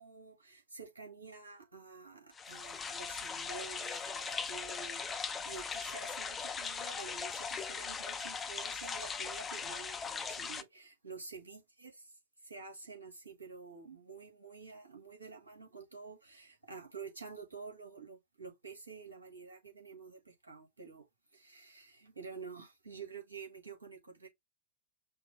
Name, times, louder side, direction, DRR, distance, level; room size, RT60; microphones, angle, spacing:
voice 1, 0.0-11.9 12.4-21.1 21.3-24.3, right 5 dB, 80° right, 1.8 m, -49 dB
sound 1, 2.4-10.6, left 5 dB, 20° left, 0.5 m, -39 dB
5.6 x 2.1 x 3.3 m
figure-of-eight pair, 90°, 0 cm